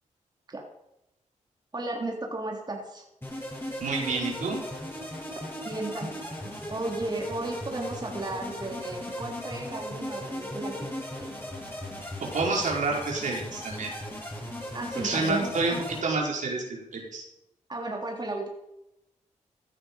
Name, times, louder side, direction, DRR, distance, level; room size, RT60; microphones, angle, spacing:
voice 1, 1.7-3.0 5.7-10.9 11.2-11.3 14.7-15.5 17.7-18.5, right 2 dB, 30° right, 0 dB, 3.5 m, -34 dB
sound 1, 3.2-16.0, left 1 dB, 15° left, 7.2 m, -37 dB
voice 2, 3.8-4.6 12.2-13.9 14.9-17.2, right 3 dB, 70° right, -1 dB, 5.1 m, -29 dB
16.0 x 12.5 x 5.6 m, 0.85 s
cardioid pair, 65°, 13 cm